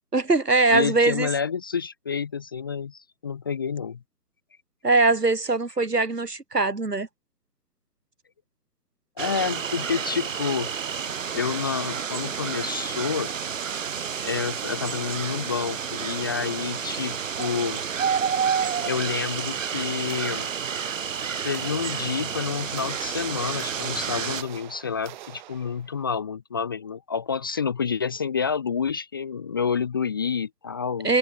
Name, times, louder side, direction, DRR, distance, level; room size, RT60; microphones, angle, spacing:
voice 1, 0.1-1.3 4.8-7.1 31.0-31.2, right 3 dB, 80° right, 3.8 m, -21 dB
voice 2, 0.7-4.0 9.2-10.7 11.3-13.3 14.2-17.8 18.8-20.5 21.4-31.2, left 6 dB, 15° left, 0.7 m, -29 dB
sound 1, 9.2-24.4, right 7 dB, 55° right, 0.9 m, -30 dB
sound 2, 20.1-21.1 21.5-26.0, right 13 dB, 30° right, 4.4 m, -46 dB
figure-of-eight pair, 140°, 47 cm